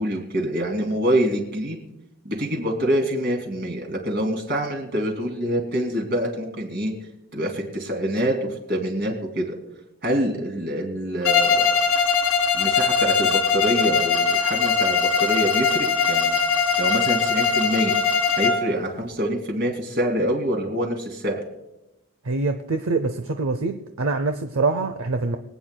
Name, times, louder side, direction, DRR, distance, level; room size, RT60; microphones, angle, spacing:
voice 1, 0.0-1.8 2.2-6.9 7.3-9.5 10.0-11.7 12.5-16.4 16.8-17.9 18.4-21.4, equal, 50° right, 1 dB, 2.7 m, -25 dB
Bowed string instrument, 11.2-18.7, left 5 dB, 85° left, 1.4 m, -21 dB
voice 2, 22.2-25.4, right 3 dB, 75° right, 7 dB, 0.6 m, -24 dB
24.5 x 9.1 x 2.2 m, 0.91 s
head